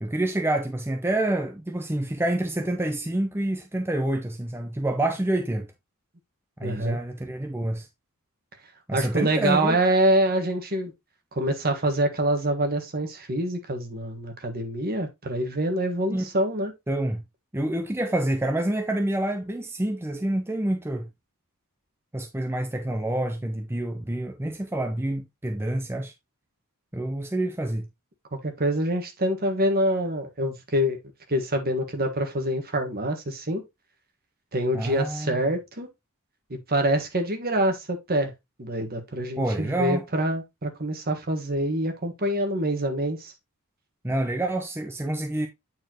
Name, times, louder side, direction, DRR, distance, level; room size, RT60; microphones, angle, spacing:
voice 1, 0.0-5.7 6.6-7.9 8.9-9.8 16.1-16.2 16.9-17.2 17.5-21.1 22.1-26.1 26.9-27.9 34.7-35.5 39.4-40.1 44.0-45.5, right 1 dB, 10° right, 0.7 m, -27 dB
voice 2, 6.6-7.0 8.9-10.9 11.3-16.7 28.4-31.0 31.3-33.6 34.5-35.9 36.5-38.3 38.6-43.3, right 1 dB, 45° right, 1.6 m, -25 dB
8.7 x 4.4 x 3.0 m
head